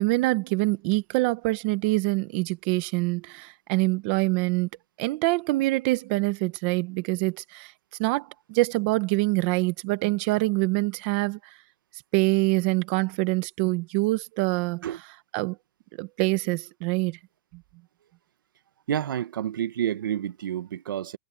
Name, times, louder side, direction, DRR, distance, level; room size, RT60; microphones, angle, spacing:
voice 1, 0.0-4.7 5.0-7.7 8.0-11.4 12.1-14.8 15.3-15.6 16.0-17.2, right 22 dB, 30° right, 1.2 m, -25 dB
voice 2, 18.9-21.2, right 10 dB, 75° right, 1.4 m, -29 dB
supercardioid pair, 175°, 11 cm